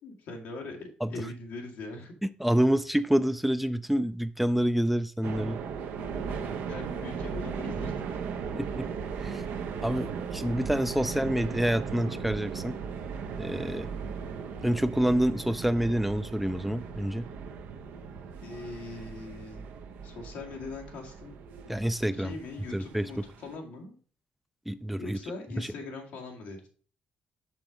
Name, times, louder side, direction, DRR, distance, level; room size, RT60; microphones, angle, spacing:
voice 1, 0.0-2.1 6.3-8.2 13.7-13.9 18.4-19.7 20.0-21.3 22.1-24.0 25.0-26.7, left 3 dB, 90° left, 2 dB, 1.9 m, -41 dB
voice 2, 2.4-5.6 8.5-8.9 9.2-9.4 9.8-12.8 13.4-13.9 14.6-17.3 21.7-22.3 22.7-23.2 24.7-25.2 25.6-25.7, equal, 5° right, 11 dB, 0.4 m, -27 dB
sound 1, 5.2-23.6, right 6 dB, 85° right, 0.8 m, -37 dB
6.0 x 5.8 x 5.0 m, 0.42 s
cardioid pair, 85°, 3 cm